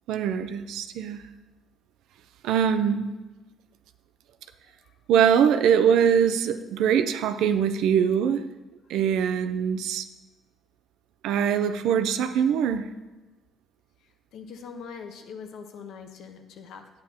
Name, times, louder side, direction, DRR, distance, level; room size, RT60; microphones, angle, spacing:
voice 1, 0.1-1.2 2.4-3.1 5.1-8.4 8.9-10.0 11.2-12.9, right 8 dB, 90° right, 11 dB, 0.5 m, -22 dB
voice 2, 14.0-16.9, left 6 dB, 80° left, 5 dB, 0.9 m, -43 dB
9.8 x 8.9 x 2.8 m, 1.2 s
cardioid pair, 125°, 0 cm